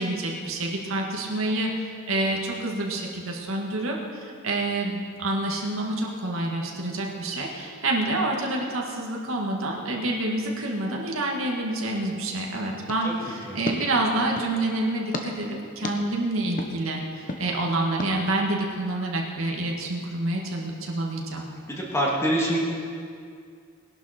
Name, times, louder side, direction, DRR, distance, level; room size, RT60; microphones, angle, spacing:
voice 1, 0.0-21.5, right 2 dB, 80° right, -1 dB, 2.1 m, -28 dB
sound 1, 12.9-14.6 15.1-15.3 15.8-16.0 16.6-16.7 17.3-17.4 18.0-18.1, left 1 dB, 40° left, 1.2 m, -34 dB
voice 2, 13.0-13.6 21.7-22.6, equal, 15° left, -4 dB, 2.6 m, -26 dB
20.0 x 11.5 x 4.5 m, 2.3 s
head